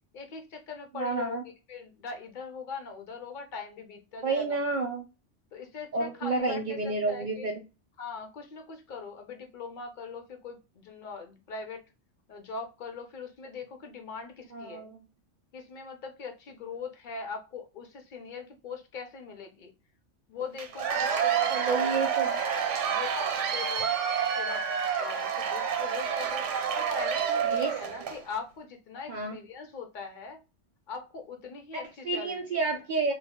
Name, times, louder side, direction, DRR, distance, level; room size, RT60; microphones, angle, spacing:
voice 1, 0.1-4.6 5.5-7.5 8.0-11.8 12.3-14.9 15.5-19.7 20.3-22.0 22.9-23.1 23.5-23.9 24.4-24.7 25.0-26.4 26.7-30.4 30.9-32.4, left 5 dB, 55° left, 0.6 m, -41 dB
voice 2, 0.9-1.4 4.2-5.0 5.9-7.6 14.5-15.0 21.5-22.4 27.5-27.7 29.1-29.4 31.7-33.1, right 3 dB, 55° right, 0.5 m, -30 dB
Cheering / Applause / Crowd, 20.6-28.2, right 7 dB, 85° right, 0.9 m, -28 dB
2.2 x 2.1 x 3.5 m
omnidirectional pair, 1.2 m